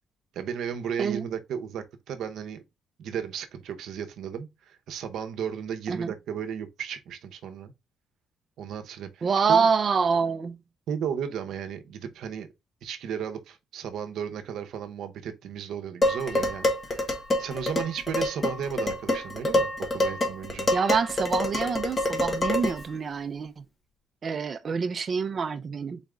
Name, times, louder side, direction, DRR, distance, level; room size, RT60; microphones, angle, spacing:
voice 1, 0.3-2.6 3.0-7.7 8.6-9.7 10.9-12.5 12.8-17.1 17.4-20.7, right 8 dB, 65° right, 0.8 m, -34 dB
voice 2, 9.2-10.6 20.7-23.6 24.2-26.0, right 5 dB, 30° right, 0.5 m, -26 dB
Dishes pots and pans, 16.0-22.9, left 1 dB, 20° left, 1.0 m, -27 dB
4.1 x 3.5 x 3.7 m
cardioid pair, 170°, 0 cm